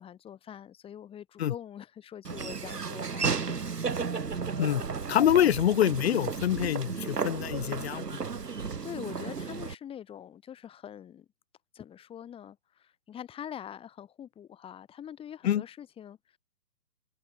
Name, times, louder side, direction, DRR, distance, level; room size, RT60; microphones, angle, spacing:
voice 1, 0.0-4.1 8.4-11.3 11.7-16.4, left 9 dB, 10° left, 4.3 m, -44 dB
Laughter / Walk footsteps, 2.2-9.7, right 5 dB, 80° right, 3.8 m, -33 dB
voice 2, 5.1-8.2 15.4-15.6, left 11 dB, 40° left, 1.8 m, -25 dB
hypercardioid pair, 145°, 47 cm